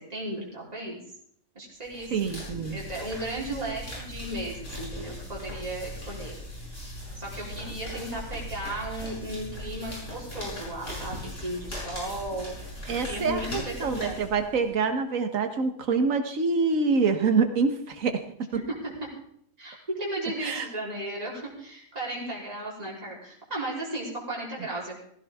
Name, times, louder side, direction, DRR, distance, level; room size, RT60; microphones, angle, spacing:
voice 1, 0.1-1.0 1.6-6.4 7.2-12.5 13.0-14.2 19.6-25.0, right 1 dB, 25° right, -6 dB, 3.9 m, -35 dB
sound 1, 1.8-14.7, left 1 dB, 55° left, 6.4 m, -39 dB
voice 2, 2.1-2.8 12.9-18.1 18.4-18.6 20.4-20.7, right 4 dB, 65° right, 7 dB, 1.6 m, -26 dB
16.0 x 15.5 x 3.6 m, 0.67 s
omnidirectional pair, 1.5 m